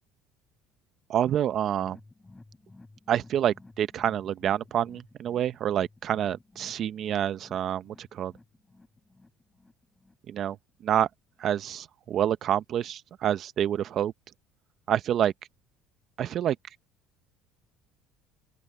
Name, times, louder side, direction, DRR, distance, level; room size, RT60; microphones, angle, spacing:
voice 1, 1.1-2.0 3.1-8.3 10.3-10.6 10.8-11.1 11.4-14.1 14.9-15.3 16.2-16.6, right 10 dB, 45° right, 0.6 m, -27 dB
sound 1, 1.7-11.0 11.3-11.4 11.8-11.9, left 2 dB, 10° left, 4.9 m, -55 dB
open air
cardioid pair, 120°, 0 cm